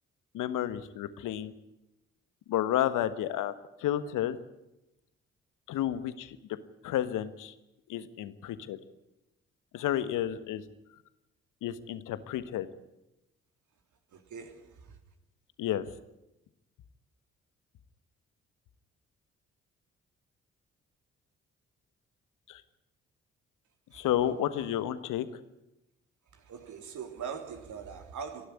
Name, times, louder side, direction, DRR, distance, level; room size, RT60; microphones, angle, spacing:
voice 1, 0.3-1.5 2.5-3.5 3.8-4.4 5.7-6.4 6.8-7.5 7.9-8.8 9.7-10.6 11.6-12.7 15.6-15.8 22.5-22.6 23.9-25.4, left 11 dB, 65° left, 13 dB, 1.5 m, -31 dB
voice 2, 14.1-15.0 23.9-24.1 26.3-28.5, right 6 dB, 60° right, 5 dB, 3.4 m, -42 dB
29.0 x 11.5 x 9.8 m, 0.93 s
hypercardioid pair, 40°, 34 cm